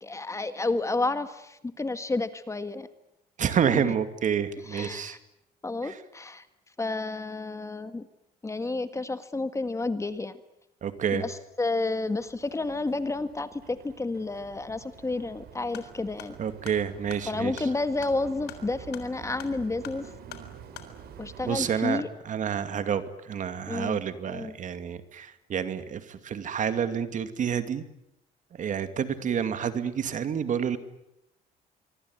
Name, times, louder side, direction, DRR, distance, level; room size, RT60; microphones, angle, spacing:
voice 1, 0.0-2.9 3.7-3.9 4.7-5.2 5.6-6.5 6.8-8.1 8.4-10.4 11.1-16.4 17.3-20.1 21.2-22.1 23.7-24.0 24.3-24.5, left 3 dB, 15° left, 11 dB, 1.7 m, -31 dB
voice 2, 3.4-5.2 5.8-6.0 10.8-11.2 16.4-17.5 21.4-27.8 28.5-30.8, right 8 dB, 50° right, 10 dB, 2.5 m, -29 dB
sound 1, 11.7-21.7, right 8 dB, 70° right, 4.4 m, -48 dB
sound 2, 15.7-20.9, left 10 dB, 85° left, 4.0 m, -47 dB
24.5 x 24.5 x 9.6 m, 0.84 s
cardioid pair, 110°, 17 cm